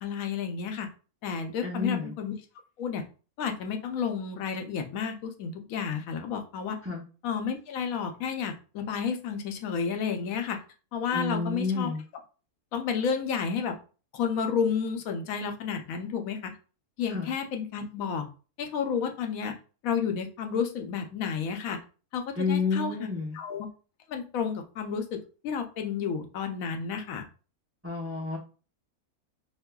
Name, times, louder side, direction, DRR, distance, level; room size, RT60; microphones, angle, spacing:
voice 1, 0.0-0.9 1.2-2.3 2.8-3.0 3.4-6.8 7.2-10.6 10.9-11.9 12.7-13.8 14.1-16.6 17.0-18.3 18.6-19.6 19.8-21.8 22.1-23.0 23.3-23.7 24.1-27.2, left 6 dB, 70° left, 5 dB, 1.0 m, -31 dB
voice 2, 1.6-2.1 6.8-7.0 11.1-12.0 17.1-17.3 22.4-23.4 27.8-28.4, left 4 dB, 20° right, -3 dB, 0.3 m, -30 dB
5.2 x 2.1 x 2.2 m, 0.36 s
omnidirectional pair, 1.6 m